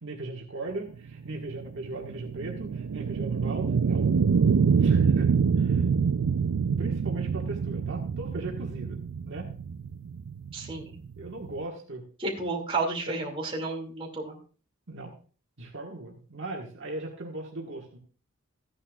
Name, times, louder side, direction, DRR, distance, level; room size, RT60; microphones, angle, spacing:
voice 1, 0.0-4.1 4.8-5.8 6.8-9.0 9.2-9.5 11.2-12.0 14.9-15.2 15.6-18.0, right 2 dB, 60° right, -1 dB, 1.6 m, -38 dB
sound 1, 0.9-11.6, right 6 dB, 80° right, 0.4 m, -26 dB
voice 2, 10.5-10.9 12.2-14.4, right 3 dB, 25° right, -1 dB, 2.4 m, -31 dB
14.0 x 9.8 x 2.4 m, 0.39 s
head